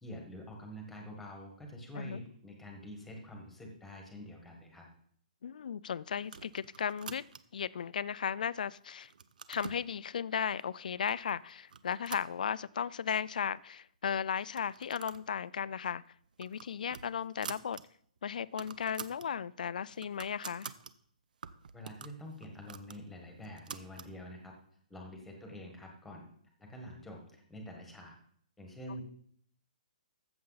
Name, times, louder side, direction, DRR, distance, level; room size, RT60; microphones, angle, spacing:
voice 1, 0.0-4.8 21.7-24.5 24.9-26.3 26.6-28.1 28.6-29.0, equal, 5° left, 1.4 m, -47 dB
voice 2, 5.4-7.2 7.5-9.1 9.5-16.0 16.4-17.8 18.2-20.7, left 7 dB, 70° left, 0.3 m, -35 dB
sound 1, 6.2-7.7 8.2-8.7 9.0-9.9 10.6-10.7 11.1-11.3 11.7-12.9 13.3-13.4 13.6-13.7 14.4-15.3 15.6-15.8 16.2-17.8 18.2-18.3 18.5-19.3 19.7-20.9 21.4-24.1, right 6 dB, 70° right, 0.7 m, -47 dB
14.0 x 7.0 x 4.0 m
hypercardioid pair, 175°, 5 cm